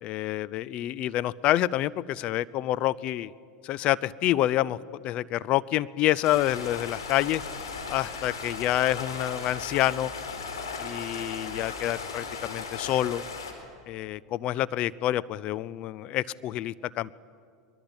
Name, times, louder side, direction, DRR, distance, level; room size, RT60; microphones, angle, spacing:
voice 1, 0.0-3.3 3.6-4.8 5.0-7.4 7.9-10.1 10.8-13.2 13.9-17.1, left 14 dB, 50° left, 18 dB, 0.6 m, -27 dB
Stream, 6.2-13.5, left 5 dB, 90° left, 4.1 m, -37 dB
23.0 x 22.0 x 8.9 m, 2.2 s
hypercardioid pair, 95°, 2 cm